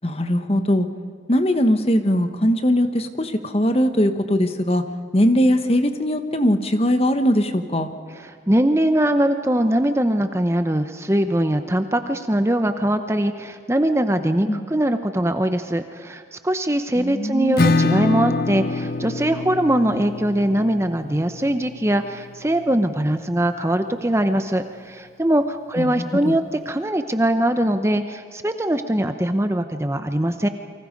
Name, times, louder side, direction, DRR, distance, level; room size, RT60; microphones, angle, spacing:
voice 1, 0.0-0.9 1.3-4.8 5.1-7.9 14.5-14.6 17.0-17.5 25.8-26.3, equal, 35° left, 8 dB, 1.3 m, -20 dB
voice 2, 8.2-30.5, right 1 dB, 15° right, 8 dB, 0.8 m, -21 dB
Acoustic guitar / Strum, 17.6-23.0, left 3 dB, 55° left, 0.7 m, -25 dB
29.5 x 24.5 x 5.3 m, 2.1 s
head